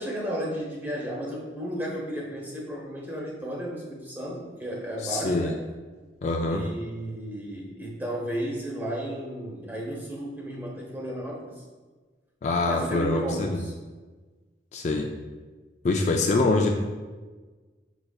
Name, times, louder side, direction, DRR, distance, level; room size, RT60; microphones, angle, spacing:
voice 1, 0.0-5.6 6.5-11.6 12.7-13.7, right 1 dB, 10° right, -3 dB, 0.9 m, -33 dB
voice 2, 5.0-5.5 6.2-6.7 12.4-13.7 14.7-15.1 15.8-16.7, left 2 dB, 40° left, 2 dB, 0.3 m, -24 dB
5.0 x 4.5 x 2.3 m, 1.3 s
head